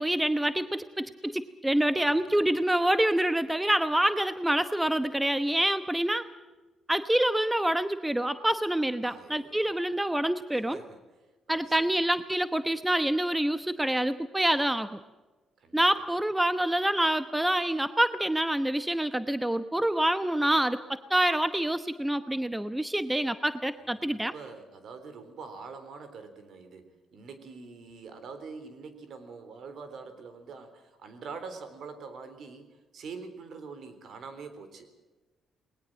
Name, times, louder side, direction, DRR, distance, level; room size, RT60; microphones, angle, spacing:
voice 1, 0.0-6.3 6.9-10.8 11.5-15.0 15.7-24.3, right 1 dB, 10° right, 11 dB, 1.0 m, -26 dB
voice 2, 9.0-9.7 10.5-11.0 11.5-11.8 15.6-15.8 23.9-34.9, right 4 dB, 65° right, 10 dB, 3.7 m, -44 dB
20.5 x 19.5 x 7.6 m, 1.2 s
cardioid pair, 90°, 0 cm